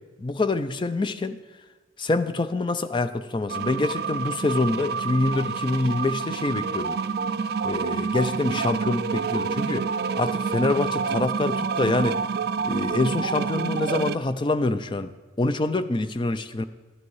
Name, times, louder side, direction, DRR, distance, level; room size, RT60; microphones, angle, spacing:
voice 1, 0.2-1.4 2.0-7.0 7.6-9.8 10.1-12.2 12.6-15.1 15.4-16.6, left 2 dB, 25° left, 12 dB, 0.4 m, -25 dB
sound 1, 3.5-14.1, right 5 dB, 55° right, 0.4 m, -28 dB
12.0 x 9.8 x 4.7 m, 1.3 s
head